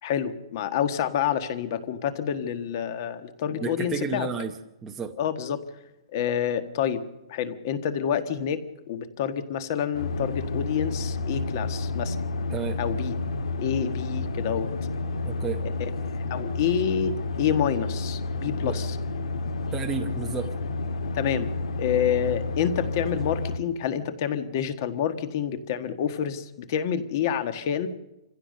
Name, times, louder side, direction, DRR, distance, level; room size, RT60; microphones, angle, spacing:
voice 1, 0.0-4.3 5.2-5.6 6.1-7.0 7.3-12.2 12.8-13.2 13.6-14.7 15.6-15.7 16.3-19.0 21.1-21.5 21.8-27.9, left 8 dB, 35° left, 11 dB, 1.5 m, -28 dB
voice 2, 3.5-4.5 4.8-5.2 12.5-12.8 15.2-15.6 18.6-18.8 19.7-20.5, right 6 dB, 10° right, 2 dB, 0.8 m, -32 dB
sound 1, 9.9-23.6, left 2 dB, 80° left, 1.9 m, -30 dB
27.0 x 15.5 x 6.7 m, 0.96 s
hypercardioid pair, 175°, 3 cm